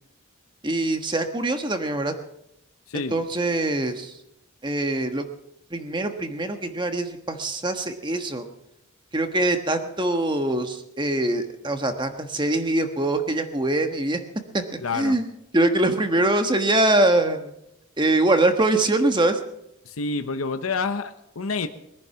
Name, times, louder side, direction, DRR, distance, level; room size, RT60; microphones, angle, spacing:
voice 1, 0.6-2.1 2.9-4.1 4.6-5.2 5.7-8.4 9.1-14.2 14.5-14.6 14.9-15.3 15.5-17.5 18.0-19.4, right 2 dB, 20° right, 7 dB, 1.3 m, -23 dB
voice 2, 14.8-15.1 19.8-21.7, left 4 dB, 85° left, 8 dB, 0.9 m, -28 dB
22.0 x 10.5 x 5.8 m, 0.82 s
head